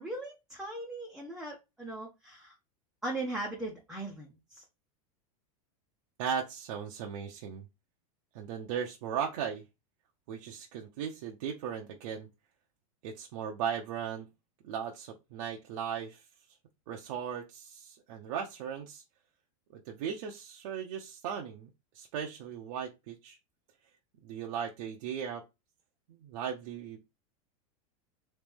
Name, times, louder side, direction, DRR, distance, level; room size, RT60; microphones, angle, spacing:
voice 1, 0.0-2.5 3.0-4.6, right 2 dB, 5° right, 0.7 m, -39 dB
voice 2, 6.2-7.7 8.3-9.6 10.3-12.3 13.0-14.3 14.6-16.2 16.9-19.0 19.7-21.7 21.9-23.4 24.2-25.4 26.1-27.0, right 7 dB, 60° right, 0.8 m, -37 dB
3.3 x 3.2 x 3.5 m
supercardioid pair, 150°, 19 cm